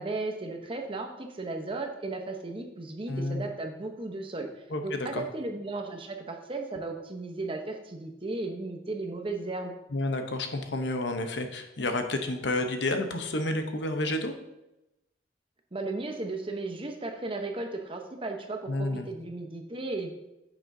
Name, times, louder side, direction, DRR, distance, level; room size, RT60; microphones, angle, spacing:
voice 1, 0.0-4.5 4.8-9.8 15.7-20.1, right 2 dB, 30° right, 4 dB, 0.9 m, -35 dB
voice 2, 3.1-3.4 4.7-5.2 9.9-14.3 18.7-19.1, left 2 dB, 80° left, 6 dB, 0.9 m, -30 dB
8.9 x 8.0 x 2.7 m, 0.92 s
head